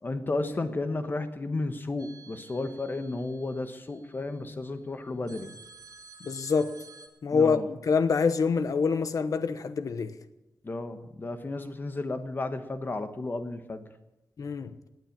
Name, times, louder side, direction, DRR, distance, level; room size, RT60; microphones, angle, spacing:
voice 1, 0.0-5.5 7.3-7.7 10.6-13.8, left 2 dB, 30° left, 1.3 m, -33 dB
sound 1, 2.0-4.2 5.3-7.1, right 4 dB, 75° right, 3.1 m, -52 dB
voice 2, 6.2-6.7 7.2-10.1 14.4-14.7, left 5 dB, 60° left, 1.0 m, -26 dB
18.0 x 9.0 x 8.8 m
wide cardioid pair, 160°, 7 cm